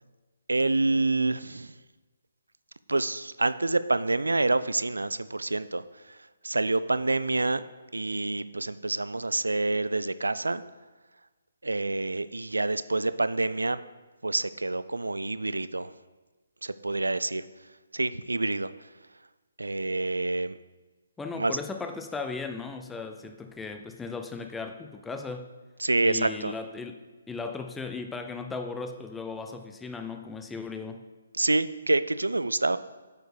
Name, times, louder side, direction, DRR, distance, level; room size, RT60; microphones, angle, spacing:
voice 1, 0.5-1.7 2.9-7.6 7.9-10.6 11.6-13.8 14.2-15.9 16.6-17.5 17.9-18.9 19.6-20.6 21.3-21.6 25.8-26.5 31.3-32.8, right 2 dB, 85° right, 14 dB, 0.4 m, -27 dB
voice 2, 21.2-25.5 26.0-31.0, left 4 dB, 5° left, 6 dB, 0.5 m, -37 dB
9.2 x 4.6 x 4.9 m, 1.3 s
figure-of-eight pair, 140°, 0 cm